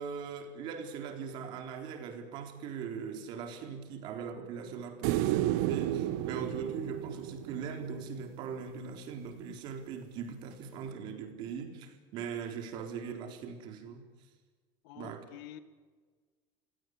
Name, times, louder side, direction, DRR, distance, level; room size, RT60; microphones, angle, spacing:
voice 1, 0.0-14.0 15.0-15.2, right 6 dB, 45° right, 6 dB, 4.0 m, -40 dB
sound 1, 5.0-8.3 10.9-11.0, right 14 dB, 75° right, 1.3 m, -32 dB
voice 2, 14.8-15.6, left 12 dB, 85° left, 12 dB, 2.1 m, -48 dB
25.0 x 17.5 x 9.8 m, 1.4 s
cardioid pair, 180°, 10 cm